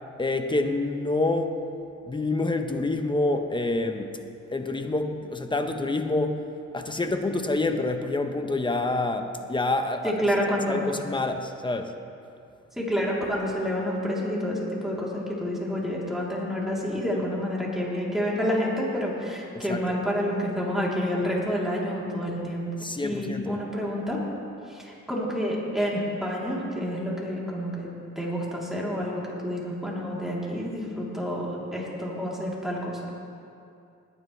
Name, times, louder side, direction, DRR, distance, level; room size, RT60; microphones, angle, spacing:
voice 1, 0.2-1.6 2.1-4.2 4.5-6.4 6.7-10.2 10.7-12.0 19.5-20.0 22.8-23.6, left 2 dB, 15° left, 6 dB, 1.0 m, -27 dB
voice 2, 10.0-10.8 12.8-22.7 23.0-24.2 24.7-27.9 28.2-33.1, equal, ahead, -5 dB, 3.5 m, -29 dB
20.0 x 9.7 x 3.4 m, 2.5 s
cardioid pair, 90°, 30 cm